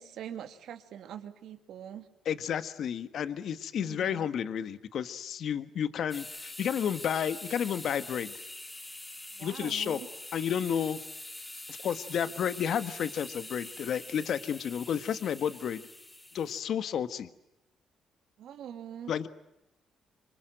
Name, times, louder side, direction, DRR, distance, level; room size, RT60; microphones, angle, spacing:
voice 1, 0.0-2.1 3.7-4.3 9.3-10.1 18.4-19.1, right 9 dB, 75° right, 8 dB, 2.6 m, -43 dB
voice 2, 2.2-8.3 9.4-10.0 10.3-11.0 11.7-15.8 16.3-17.3 19.1-19.3, left 8 dB, 65° left, 12 dB, 1.5 m, -31 dB
sound 1, 6.1-16.6, left 1 dB, 15° left, 3.1 m, -44 dB
27.0 x 24.0 x 9.1 m, 0.89 s
cardioid pair, 90°, 0 cm